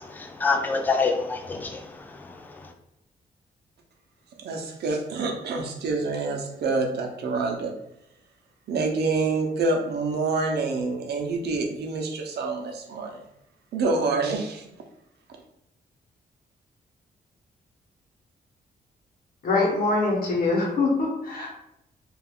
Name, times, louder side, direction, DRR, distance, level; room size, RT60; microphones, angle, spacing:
voice 1, 0.0-2.6, left 4 dB, 10° left, 3 dB, 0.3 m, -27 dB
voice 2, 4.4-7.7 8.7-13.2 13.7-14.6, right 3 dB, 80° right, 2 dB, 0.6 m, -27 dB
voice 3, 19.4-21.5, left 3 dB, 60° left, -1 dB, 0.9 m, -23 dB
2.4 x 2.2 x 3.5 m, 0.81 s
wide cardioid pair, 150°, 17 cm